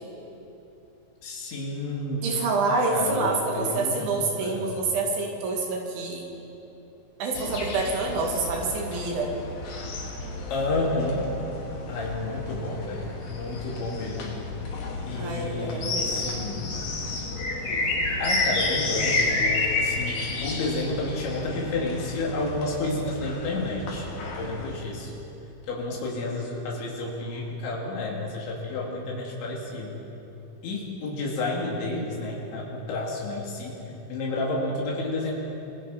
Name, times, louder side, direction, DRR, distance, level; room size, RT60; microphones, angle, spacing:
voice 1, 1.2-2.3 2.7-4.8 10.5-11.2 11.9-14.4 15.1-16.7 17.7-17.8 18.2-25.2 25.7-30.0 30.6-35.3, left 2 dB, 85° left, -3 dB, 4.8 m, -31 dB
voice 2, 2.2-6.3 7.2-9.3 15.2-16.3, right 3 dB, 85° right, 0 dB, 5.1 m, -27 dB
sound 1, 7.3-24.7, left 2 dB, 50° left, 3.1 m, -31 dB
26.5 x 21.5 x 5.4 m, 3.0 s
omnidirectional pair, 5.2 m